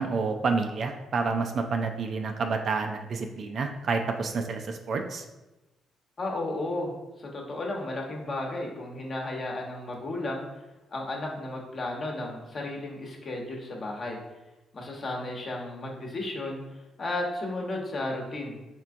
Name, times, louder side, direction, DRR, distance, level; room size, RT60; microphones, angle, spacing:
voice 1, 0.0-5.2, right 4 dB, 55° right, 4 dB, 0.3 m, -29 dB
voice 2, 6.2-6.9 7.2-10.4 10.9-14.2 14.7-16.6 17.0-18.6, left 2 dB, 45° left, -1 dB, 0.9 m, -33 dB
4.4 x 3.4 x 2.5 m, 1.0 s
cardioid pair, 90°, 0 cm